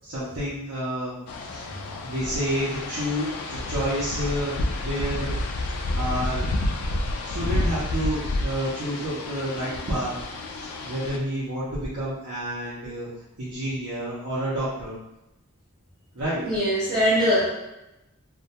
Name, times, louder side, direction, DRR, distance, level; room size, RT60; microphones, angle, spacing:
voice 1, 0.0-1.1 1.5-1.6 2.0-4.5 4.8-5.4 5.9-6.5 7.2-10.1 10.5-13.1 13.4-15.0 16.1-16.4, equal, 75° right, -9 dB, 0.6 m, -29 dB
sound 1, 1.3-11.2, left 2 dB, 80° left, 0.3 m, -30 dB
voice 2, 16.4-17.5, equal, 5° left, -14 dB, 0.9 m, -21 dB
2.2 x 2.2 x 2.7 m, 0.89 s
head